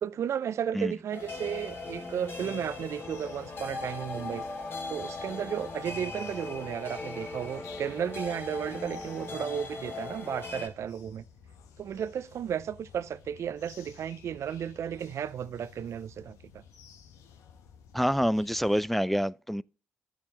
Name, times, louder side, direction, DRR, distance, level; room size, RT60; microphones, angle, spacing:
voice 1, 0.0-4.5 4.9-11.2 11.8-16.6, right 9 dB, 60° right, 0.5 m, -34 dB
sound 1, 1.1-10.7, left 3 dB, 45° left, 2.4 m, -39 dB
sound 2, 1.2-18.9, left 7 dB, 75° left, 0.9 m, -54 dB
voice 2, 17.9-19.6, equal, 5° left, 0.3 m, -27 dB
11.5 x 7.0 x 2.9 m
hypercardioid pair, 45°, 5 cm